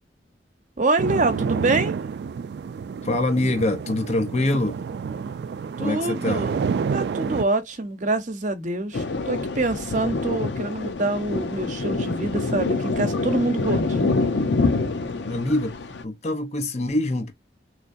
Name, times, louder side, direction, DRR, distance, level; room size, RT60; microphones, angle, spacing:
voice 1, 0.8-1.9 5.8-6.6 6.9-14.1, right 2 dB, 45° right, 0.8 m, -26 dB
sound 1, 1.0-7.4, right 6 dB, 65° right, 0.3 m, -29 dB
voice 2, 3.0-4.8 5.8-6.5 15.2-15.8 16.0-17.3, left 2 dB, 40° left, 0.7 m, -24 dB
Thunder, 8.9-16.0, left 3 dB, 85° left, 0.7 m, -26 dB
3.7 x 3.2 x 2.5 m
head